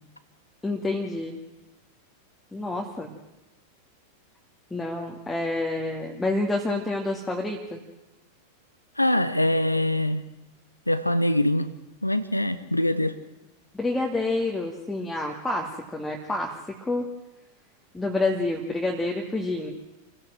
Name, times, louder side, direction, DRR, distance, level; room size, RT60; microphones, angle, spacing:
voice 1, 0.6-1.4 2.5-3.1 4.7-7.8 13.7-17.1 17.9-19.7, left 2 dB, 5° left, -1 dB, 2.5 m, -28 dB
voice 2, 9.0-10.2 10.9-11.7 12.0-13.2, left 1 dB, 85° left, 13 dB, 1.3 m, -23 dB
27.5 x 16.5 x 7.7 m, 0.98 s
figure-of-eight pair, 90°, 0 cm